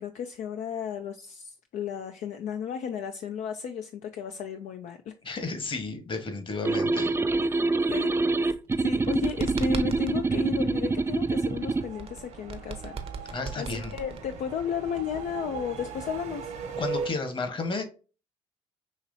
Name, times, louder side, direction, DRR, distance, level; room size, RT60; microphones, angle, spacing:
voice 1, 0.0-5.2 7.9-8.2 8.8-16.5, left 7 dB, 65° left, 0.5 m, -34 dB
voice 2, 5.2-7.1 13.3-13.9 16.8-17.8, left 3 dB, 40° left, 1.2 m, -32 dB
sound 1, 6.7-11.9, right 3 dB, 20° right, 0.4 m, -26 dB
sound 2, 8.4-10.2 12.0-14.6, right 5 dB, 50° right, 0.7 m, -37 dB
sound 3, 8.9-17.1, right 5 dB, 65° right, 1.1 m, -40 dB
5.7 x 3.0 x 2.7 m
hypercardioid pair, 55°, 13 cm